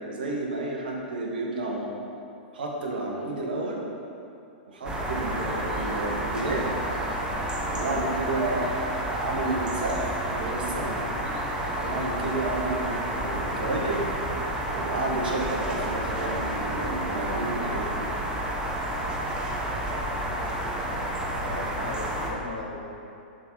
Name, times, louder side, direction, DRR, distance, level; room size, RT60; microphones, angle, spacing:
voice 1, 0.0-1.9 2.5-3.8 4.7-6.7 7.7-11.0 11.7-14.1 14.7-18.0, right 2 dB, 70° right, -1 dB, 1.3 m, -31 dB
sound 1, 4.8-22.3, right 1 dB, 15° right, 1.1 m, -30 dB
voice 2, 20.9-22.9, left 2 dB, 75° left, -3 dB, 1.4 m, -38 dB
7.0 x 3.9 x 5.4 m, 2.7 s
figure-of-eight pair, 105°, 5 cm